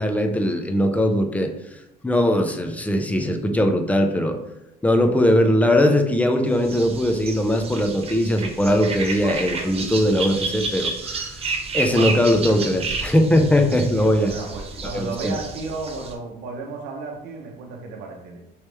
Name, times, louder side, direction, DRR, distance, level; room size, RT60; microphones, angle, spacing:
voice 1, 0.0-1.5 2.0-4.4 4.8-11.3 11.7-14.3 14.9-15.3, left 1 dB, 10° left, 5 dB, 0.4 m, -20 dB
sound 1, 6.6-16.1, right 4 dB, 35° right, 0.6 m, -31 dB
voice 2, 13.6-18.4, right 3 dB, 80° right, 1 dB, 0.7 m, -34 dB
3.1 x 3.1 x 3.3 m, 0.87 s
cardioid pair, 110°, 17 cm